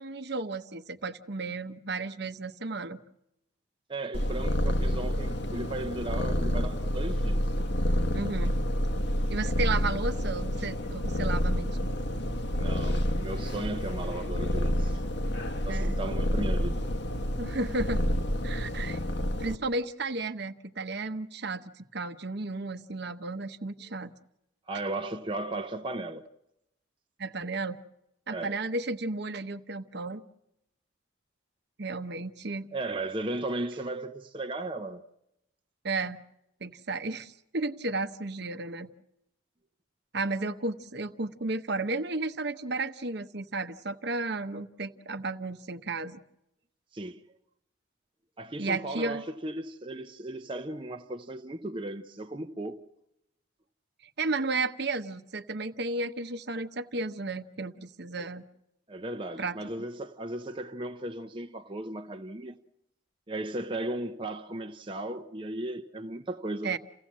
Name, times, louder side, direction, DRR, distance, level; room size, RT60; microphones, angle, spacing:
voice 1, 0.0-3.0 8.1-8.5 9.3-11.8 15.7-16.0 17.4-18.0 18.4-19.0 19.4-24.1 27.2-27.8 28.3-30.2 31.8-32.7 35.8-36.2 36.6-38.9 40.1-46.2 48.6-49.2 54.2-58.4 59.4-59.6 66.6-66.8, right 3 dB, 55° right, 0.9 m, -33 dB
voice 2, 3.9-7.4 12.5-15.0 15.7-16.8 24.7-26.2 28.3-28.6 32.7-35.0 46.9-47.2 48.4-52.8 58.2-58.3 58.9-62.6 63.3-66.8, right 2 dB, 25° right, 0.7 m, -36 dB
Purr, 4.1-19.5, equal, 55° left, 1.2 m, -29 dB
29.0 x 16.0 x 7.4 m
head